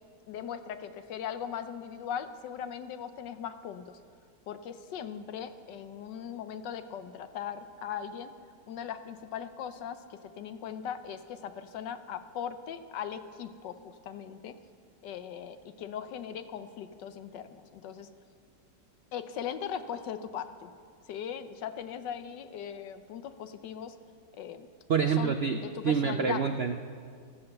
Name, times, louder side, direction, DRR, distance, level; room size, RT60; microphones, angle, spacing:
voice 1, 0.3-4.0 4.5-8.3 8.7-14.6 15.0-18.1 19.1-20.7 21.1-23.9 24.4-24.7 25.0-26.6, left 8 dB, 80° left, 10 dB, 1.4 m, -39 dB
voice 2, 24.9-25.6 25.8-26.9, right 6 dB, 75° right, 7 dB, 0.5 m, -27 dB
14.5 x 13.0 x 6.7 m, 2.1 s
omnidirectional pair, 1.9 m